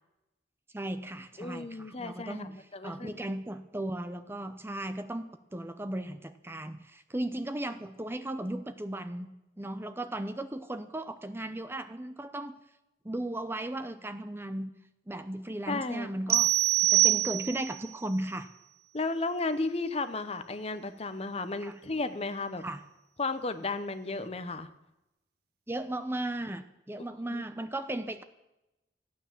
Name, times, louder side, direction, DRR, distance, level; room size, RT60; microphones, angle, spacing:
voice 1, 0.7-9.3 9.6-12.6 13.0-14.7 15.1-16.5 16.8-18.5 21.6-21.8 22.6-22.8 25.7-28.2, right 1 dB, 15° right, 10 dB, 0.6 m, -36 dB
voice 2, 1.4-3.4 15.7-16.4 18.9-22.6 23.2-24.7 27.3-27.4, left 3 dB, 35° left, 11 dB, 0.8 m, -34 dB
sound 1, 16.3-17.8, right 15 dB, 60° right, 0.8 m, -24 dB
14.5 x 9.4 x 7.4 m, 0.94 s
head